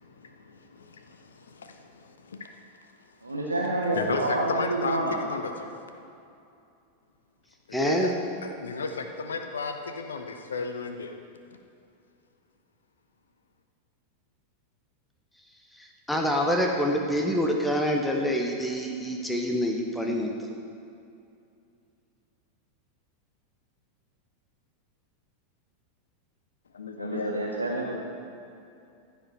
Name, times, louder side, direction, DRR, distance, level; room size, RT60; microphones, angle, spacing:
voice 1, 0.0-2.5 3.9-6.0 7.7-8.2 8.4-11.1 26.7-27.4, left 4 dB, 70° left, 6 dB, 0.6 m, -34 dB
voice 2, 3.2-5.2 27.0-28.0, right 2 dB, 80° right, -2 dB, 0.8 m, -28 dB
voice 3, 7.7-8.1 16.1-20.3, equal, 5° left, 1 dB, 0.8 m, -26 dB
14.5 x 5.3 x 4.4 m, 2.6 s
figure-of-eight pair, 90°, 0 cm